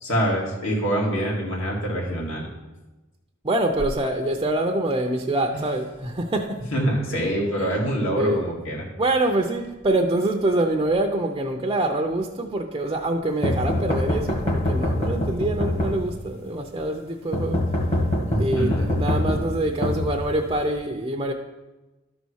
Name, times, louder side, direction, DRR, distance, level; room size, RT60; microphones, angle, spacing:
voice 1, 0.0-2.5 6.7-8.9 18.3-18.9, right 1 dB, 65° left, -2 dB, 2.4 m, -25 dB
voice 2, 3.4-6.6 7.6-7.7 8.1-8.5 9.0-17.6 18.4-21.3, right 1 dB, 25° right, 2 dB, 0.6 m, -25 dB
sound 1, 13.4-16.4 17.3-20.7, left 1 dB, 30° left, 1.5 m, -25 dB
12.5 x 4.1 x 6.3 m, 1.1 s
head